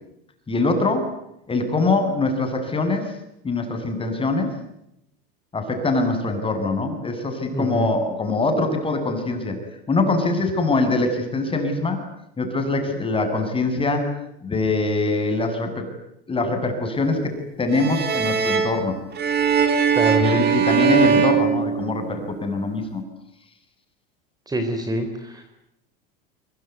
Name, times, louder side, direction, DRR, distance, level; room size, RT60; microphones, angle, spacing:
voice 1, 0.5-1.1 1.5-3.1 3.4-4.5 5.5-9.6 9.9-12.0 12.4-14.1 14.4-15.9 16.3-19.0 20.2-23.0, left 3 dB, 20° left, 6 dB, 7.9 m, -23 dB
voice 2, 7.5-7.9 19.9-20.3 24.5-25.4, right 1 dB, 15° right, 7 dB, 4.0 m, -25 dB
sound 1, 17.7-22.3, right 7 dB, 35° right, 5.5 m, -21 dB
25.0 x 24.5 x 9.6 m, 0.81 s
supercardioid pair, 115°, 29 cm